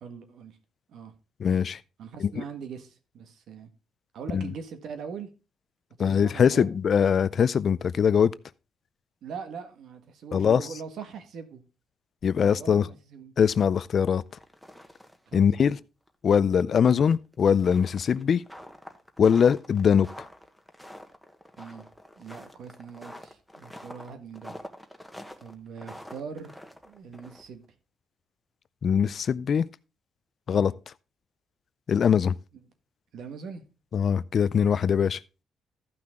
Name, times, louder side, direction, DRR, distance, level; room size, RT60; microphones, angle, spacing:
voice 1, 0.0-0.6 0.9-1.1 2.0-3.7 4.1-5.3 6.0-6.7 9.2-11.6 12.4-13.3 15.3-15.7 16.9-17.0 21.6-21.9 22.2-24.5 25.4-26.5 26.8-27.6 30.5-30.7 33.1-33.6, right 6 dB, 75° right, 1.6 m, -41 dB
voice 2, 1.4-1.8 2.2-2.4 4.3-4.5 6.0-8.3 10.3-10.6 12.2-12.9 13.4-14.2 15.3-15.8 16.2-18.4 19.2-20.3 28.8-29.7 30.5-30.7 31.9-32.3 33.9-35.2, left 7 dB, 55° left, 0.4 m, -22 dB
sound 1, 14.3-15.3 15.6-15.7 16.1-16.2 16.9-27.7, equal, ahead, 1.2 m, -46 dB
14.0 x 5.9 x 3.6 m
cardioid pair, 90°, 0 cm